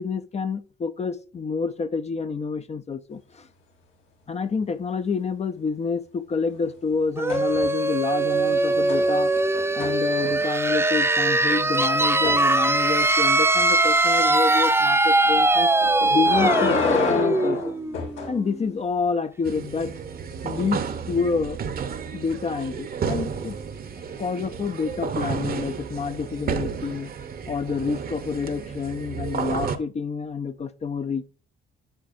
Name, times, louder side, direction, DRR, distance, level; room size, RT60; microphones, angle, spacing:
voice 1, 0.0-3.5 4.3-9.3 9.7-15.7 16.1-17.7 18.3-19.9 20.4-21.6 22.1-23.5 24.2-27.1 27.5-31.2, left 5 dB, 35° left, 0.6 m, -28 dB
sound 1, 7.2-18.7, right 2 dB, 10° right, 0.7 m, -21 dB
sound 2, 7.3-7.9 8.3-10.6 12.2-12.4 15.8-18.3 20.6-20.7, left 5 dB, 85° left, 2.7 m, -29 dB
sound 3, 19.4-29.8, right 6 dB, 50° right, 0.9 m, -32 dB
8.9 x 6.2 x 2.6 m
cardioid pair, 90°, 20 cm